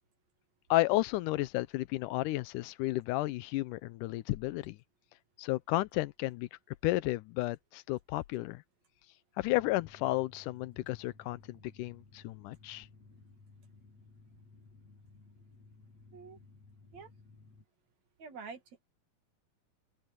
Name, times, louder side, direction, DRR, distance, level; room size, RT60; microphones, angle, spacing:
voice 1, 0.7-4.8 5.4-6.5 6.8-8.6 9.4-12.9, left 18 dB, 90° left, 2.2 m, -32 dB
sound 1, 9.6-17.7, left 3 dB, 55° left, 7.1 m, -58 dB
voice 2, 18.2-18.8, right 5 dB, 60° right, 3.4 m, -47 dB
open air
omnidirectional pair, 3.6 m